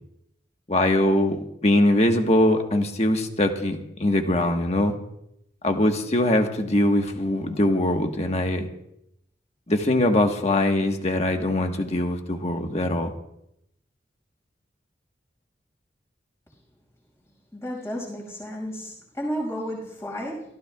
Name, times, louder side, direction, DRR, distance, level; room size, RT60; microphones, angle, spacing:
voice 1, 0.7-4.9 5.6-8.7 9.7-13.1, left 1 dB, 35° left, 4 dB, 1.4 m, -22 dB
voice 2, 17.5-20.4, equal, 15° left, -2 dB, 6.0 m, -32 dB
28.0 x 15.0 x 2.4 m, 0.79 s
head